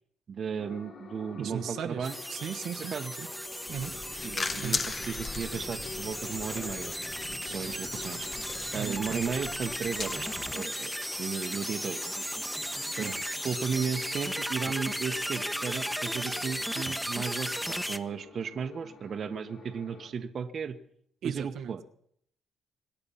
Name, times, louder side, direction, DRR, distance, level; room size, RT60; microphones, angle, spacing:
voice 1, 0.3-2.2 2.8-3.1 4.2-6.9 7.4-8.3 8.7-12.0 12.9-13.1 13.4-20.8 21.2-21.8, right 6 dB, 55° right, 8 dB, 1.2 m, -35 dB
sound 1, 0.6-20.1, left 4 dB, 55° left, 5.4 m, -50 dB
voice 2, 1.4-3.3 3.7-3.9 4.6-4.8 8.7-9.3 13.0-13.1 21.2-21.7, right 8 dB, 75° right, 4 dB, 1.2 m, -37 dB
sound 2, 2.0-18.0, equal, ahead, 1.2 m, -35 dB
sound 3, 3.7-10.5, left 4 dB, 35° left, 1.0 m, -39 dB
25.5 x 9.8 x 5.7 m, 0.67 s
cardioid pair, 90°, 0 cm